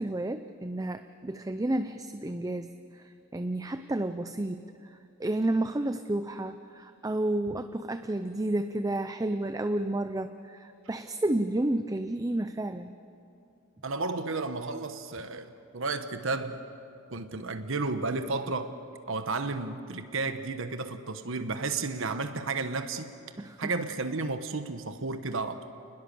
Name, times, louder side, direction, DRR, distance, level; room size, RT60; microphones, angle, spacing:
voice 1, 0.0-3.0 3.3-4.6 5.2-12.9 23.4-23.7, right 1 dB, 15° right, 9 dB, 0.5 m, -31 dB
voice 2, 13.8-16.6 17.1-18.7 19.1-23.1 23.6-25.7, right 3 dB, 65° right, 9 dB, 1.2 m, -32 dB
28.5 x 20.5 x 7.0 m, 2.6 s
head